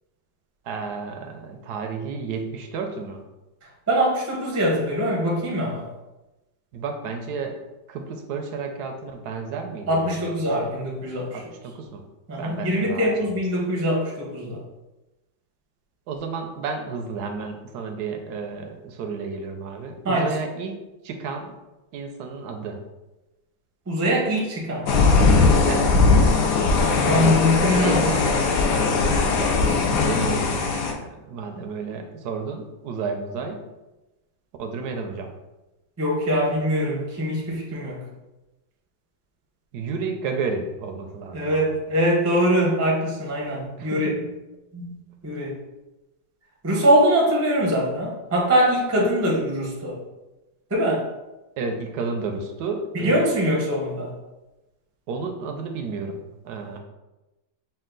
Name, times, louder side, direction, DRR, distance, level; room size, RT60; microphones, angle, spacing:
voice 1, 0.7-3.2 6.7-7.6 7.9-10.3 11.3-12.0 12.4-13.3 16.1-20.7 21.0-21.5 21.9-22.8 25.7-25.9 29.9-33.6 34.6-35.3 39.7-41.8 43.8-44.1 51.6-53.2 55.1-56.8, right 4 dB, 70° right, 4 dB, 1.0 m, -32 dB
voice 2, 3.9-5.9 9.9-11.4 12.3-14.6 20.0-20.4 23.9-24.9 26.9-28.5 36.0-38.0 41.3-44.2 44.7-44.9 45.2-45.5 46.6-50.0 50.7-51.1 52.9-54.1, equal, 20° right, -3 dB, 0.4 m, -23 dB
sound 1, 24.9-30.9, left 4 dB, 70° left, 1.1 m, -19 dB
5.5 x 2.3 x 3.8 m, 1.0 s
omnidirectional pair, 2.1 m